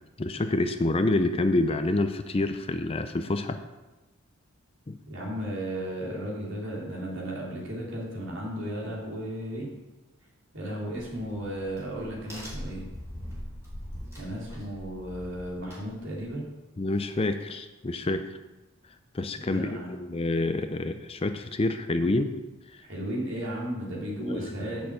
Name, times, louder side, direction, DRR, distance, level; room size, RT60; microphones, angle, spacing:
voice 1, 0.2-3.6 4.9-5.0 16.8-18.4 19.1-22.3 22.7-22.8 24.2-24.8, left 2 dB, 25° left, 9 dB, 0.4 m, -28 dB
voice 2, 5.1-9.7 10.5-12.9 14.2-16.4 19.4-19.9 22.8-24.9, equal, 55° right, -4 dB, 3.5 m, -34 dB
Crack, 10.9-16.4, equal, 15° right, 4.0 m, -42 dB
7.9 x 6.8 x 7.9 m, 1.1 s
head